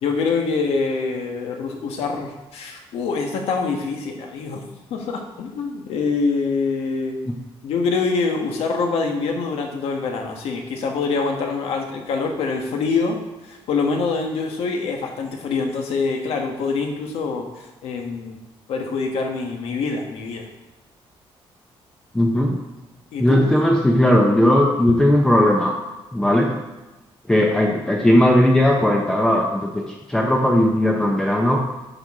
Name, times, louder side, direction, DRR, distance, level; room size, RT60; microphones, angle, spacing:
voice 1, 0.0-7.2 7.6-13.2 13.5-18.4 18.7-20.5 23.1-23.5, left 4 dB, 85° left, 2 dB, 1.4 m, -25 dB
voice 2, 22.1-22.6 23.2-25.8 26.1-26.5 27.3-31.6, left 1 dB, 5° left, 0 dB, 0.6 m, -17 dB
9.5 x 6.1 x 3.7 m, 1.1 s
cardioid pair, 180°, 10 cm